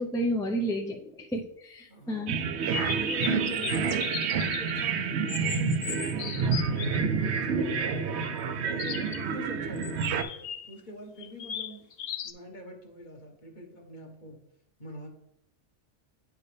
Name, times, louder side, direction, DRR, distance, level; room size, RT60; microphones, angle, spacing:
voice 1, 0.0-2.4, equal, 5° left, 1 dB, 0.4 m, -31 dB
voice 2, 1.9-2.3 2.9-10.2 10.7-11.9 12.2-14.4 14.8-15.1, left 1 dB, 40° left, 1 dB, 1.3 m, -45 dB
sound 1, 2.3-10.2, right 6 dB, 70° right, 0.9 m, -28 dB
sound 2, 2.7-4.9 5.3-7.0 8.8-9.3 9.8-10.7 11.2-12.3, left 9 dB, 65° left, 0.7 m, -37 dB
9.3 x 4.8 x 3.3 m, 0.75 s
omnidirectional pair, 1.2 m